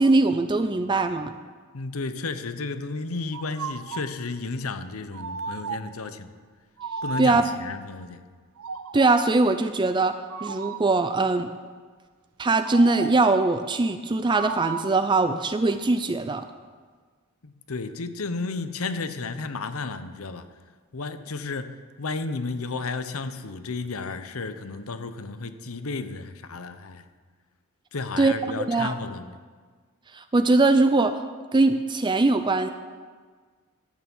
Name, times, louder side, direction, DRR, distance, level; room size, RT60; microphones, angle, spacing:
voice 1, 0.0-1.3 7.2-7.4 8.9-10.2 10.4-11.5 12.4-16.4 28.2-28.9 30.1-31.2 31.5-32.7, right 3 dB, 20° right, 9 dB, 0.4 m, -21 dB
voice 2, 1.7-6.3 7.0-8.2 17.4-20.5 20.9-27.0 27.9-29.4, left 3 dB, 75° left, 10 dB, 0.9 m, -33 dB
sound 1, 3.3-4.2 5.1-6.0 6.8-7.7 8.6-9.4 10.3-11.0 12.6-13.4 14.3-15.1, right 5 dB, 75° right, 0.6 m, -35 dB
13.0 x 8.5 x 7.3 m, 1.6 s
head